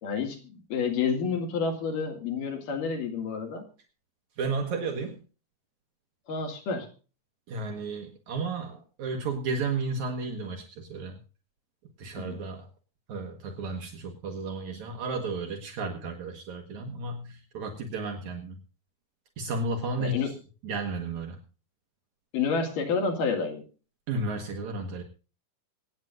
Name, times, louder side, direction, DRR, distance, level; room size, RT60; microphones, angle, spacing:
voice 1, 0.0-3.7 6.3-6.9 12.2-12.4 20.0-20.4 22.3-23.6, left 5 dB, 90° left, 4 dB, 3.8 m, -29 dB
voice 2, 4.4-5.2 7.5-11.2 12.0-12.7 13.1-18.6 19.4-20.4 20.6-21.4 24.1-25.0, right 3 dB, 65° right, 3 dB, 2.7 m, -33 dB
25.0 x 9.2 x 2.5 m, 0.35 s
omnidirectional pair, 3.7 m